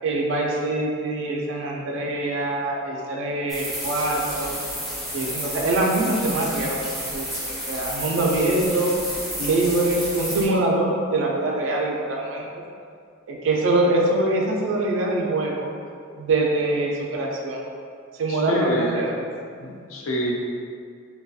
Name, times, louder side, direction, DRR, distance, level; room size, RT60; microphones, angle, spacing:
voice 1, 0.0-4.6 5.1-7.2 7.7-8.9 9.4-12.5 13.3-15.7 16.2-17.6 18.2-19.1, right 2 dB, 65° right, -1 dB, 0.3 m, -24 dB
sound 1, 3.5-10.5, equal, ahead, 0.5 m, -31 dB
voice 2, 18.3-18.9 19.6-20.3, equal, 80° left, -2 dB, 0.4 m, -27 dB
2.3 x 2.2 x 2.6 m, 2.2 s
head